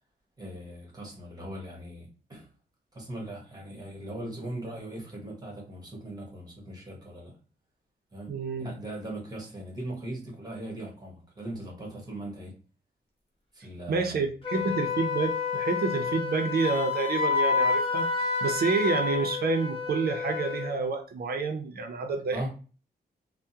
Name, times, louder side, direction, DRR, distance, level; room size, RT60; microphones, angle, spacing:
voice 1, 0.4-2.5 2.9-7.3 8.1-8.3 8.6-12.5 13.5-14.2 14.6-14.7 22.3-22.5, right 1 dB, 20° right, -1 dB, 1.3 m, -39 dB
voice 2, 8.3-8.7 13.9-18.1 18.4-22.5, right 4 dB, 65° right, 5 dB, 0.6 m, -28 dB
Wind instrument woodwind instrument, 14.4-20.8, left 5 dB, 30° left, 0.9 m, -29 dB
3.4 x 2.1 x 2.8 m, 0.36 s
wide cardioid pair, 115°, 17 cm